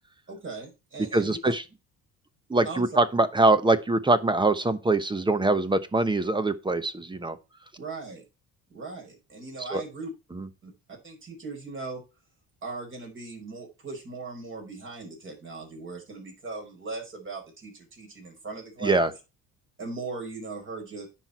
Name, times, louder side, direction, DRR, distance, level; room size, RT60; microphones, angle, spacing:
voice 1, 0.3-1.5 2.6-2.9 7.8-8.2 8.7-10.1 10.6-10.7 11.0-12.0 12.6-19.1 19.8-21.1, right 3 dB, 35° right, 5.1 m, -38 dB
voice 2, 1.1-1.6 2.5-7.4 9.7-9.8 10.3-10.5 18.8-19.1, right 2 dB, 15° right, 0.9 m, -23 dB
9.9 x 4.6 x 5.6 m
cardioid pair, 105°, 36 cm